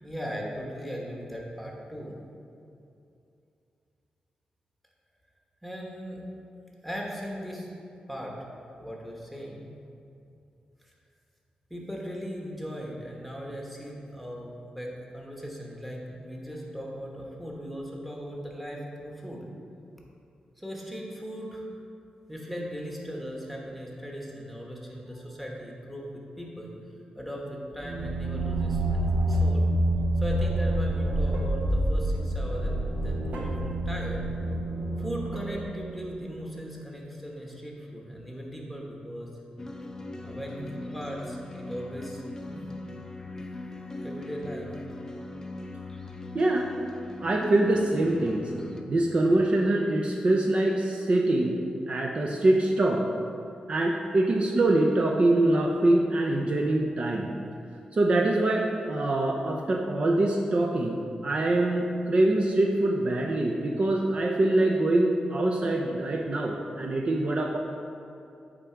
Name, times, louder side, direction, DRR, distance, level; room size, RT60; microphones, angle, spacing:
voice 1, 0.0-2.1 5.6-6.2 6.8-7.7 8.1-8.4 8.7-9.7 11.7-19.5 20.6-21.7 22.3-26.7 27.1-29.7 30.2-34.3 35.0-39.3 40.2-42.2 42.5-42.7 44.0-44.7, equal, ahead, -2 dB, 1.2 m, -38 dB
sound 1, 27.7-36.3, right 1 dB, 70° right, 1.1 m, -27 dB
sound 2, 39.6-48.8, left 2 dB, 20° left, 0.5 m, -40 dB
voice 2, 46.3-46.7 47.2-48.5 48.9-51.6 51.9-53.1 53.7-57.3 57.9-67.6, right 2 dB, 45° right, 0 dB, 0.5 m, -24 dB
8.8 x 3.6 x 4.5 m, 2.6 s
cardioid pair, 90°, 3 cm